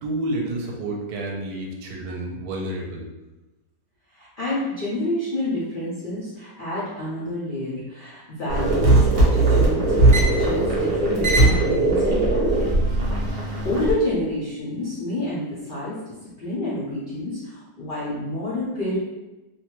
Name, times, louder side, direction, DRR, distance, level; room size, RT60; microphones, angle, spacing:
voice 1, 0.0-3.1, right 1 dB, 75° right, 0 dB, 1.0 m, -29 dB
voice 2, 4.1-12.7 13.6-16.0 16.4-19.0, left 1 dB, 60° left, -9 dB, 0.5 m, -28 dB
sound 1, 8.5-13.9, right 2 dB, 50° right, 0.7 m, -19 dB
2.7 x 2.2 x 2.9 m, 1.1 s
omnidirectional pair, 1.8 m